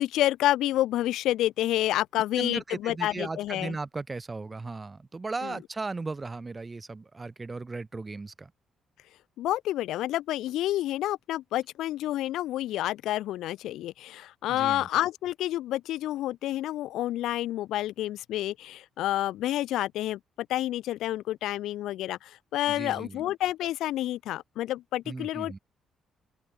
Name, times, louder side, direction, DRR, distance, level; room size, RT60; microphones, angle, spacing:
voice 1, 0.0-3.8 5.4-5.5 9.4-25.6, left 14 dB, 85° left, 1.5 m, -29 dB
voice 2, 2.4-8.5 14.5-14.9 22.7-23.2 25.0-25.6, right 3 dB, 25° right, 6.8 m, -36 dB
open air
cardioid pair, 90°, 0 cm